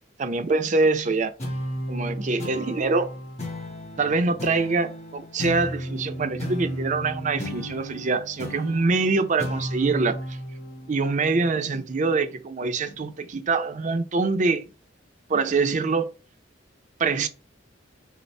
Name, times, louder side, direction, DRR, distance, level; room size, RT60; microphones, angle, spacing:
voice 1, 0.2-1.3 1.9-3.1 4.0-10.4 10.9-14.7 15.3-16.1 17.0-17.3, right 3 dB, 40° right, 0.5 m, -24 dB
sound 1, 1.4-12.2, equal, 35° left, 1.5 m, -34 dB
5.2 x 2.0 x 3.2 m
head